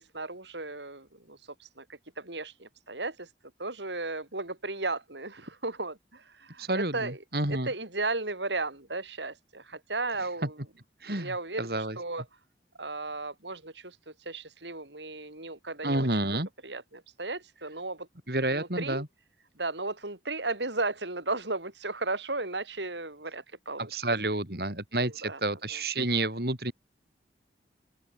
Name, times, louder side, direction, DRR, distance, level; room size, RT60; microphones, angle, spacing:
voice 1, 0.0-1.4 1.8-1.9 2.2-3.3 3.6-7.2 7.5-10.6 11.1-12.2 12.8-14.0 14.3-18.1 18.5-19.0 19.6-23.9 25.0-25.4 25.7-25.8, right 3 dB, 90° right, 7.2 m, -35 dB
voice 2, 6.6-7.7 11.0-12.0 15.8-16.5 18.3-19.1 23.8-26.7, right 2 dB, 60° right, 5.0 m, -30 dB
open air
head